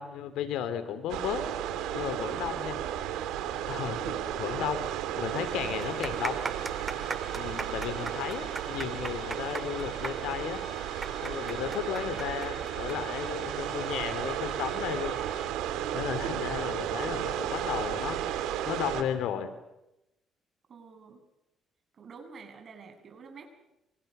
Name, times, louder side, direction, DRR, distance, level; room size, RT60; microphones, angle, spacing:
voice 1, 0.0-1.4 1.9-2.8 3.7-4.8 5.1-6.4 7.3-10.6 11.2-15.2 15.9-18.2 18.7-19.5, left 9 dB, 85° left, 12 dB, 2.9 m, -34 dB
sound 1, 1.1-19.0, right 11 dB, 90° right, 2.6 m, -34 dB
sound 2, 4.6-4.7 5.0-5.1 5.7-13.0 13.2-13.3 14.1-14.4, right 4 dB, 30° right, 2.3 m, -37 dB
Musical instrument, 5.2-15.5, left 5 dB, 40° left, 3.1 m, -51 dB
voice 2, 20.7-21.2 21.9-23.5, right 5 dB, 50° right, 5 dB, 7.5 m, -49 dB
28.0 x 26.5 x 6.8 m, 0.92 s
cardioid pair, 85°, 0 cm